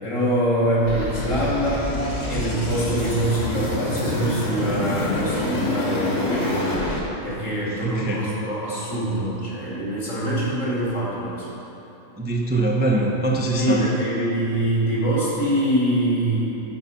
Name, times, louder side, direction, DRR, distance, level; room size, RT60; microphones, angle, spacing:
voice 1, 0.0-2.0 2.3-6.8 7.2-11.5 13.5-16.6, right 1 dB, 70° left, -7 dB, 3.0 m, -24 dB
sound 1, 0.9-7.0, left 1 dB, 50° left, 1.7 m, -26 dB
voice 2, 7.8-8.2 12.2-13.9, right 2 dB, 10° right, -2 dB, 0.5 m, -22 dB
12.0 x 4.8 x 5.7 m, 3.0 s
omnidirectional pair, 1.4 m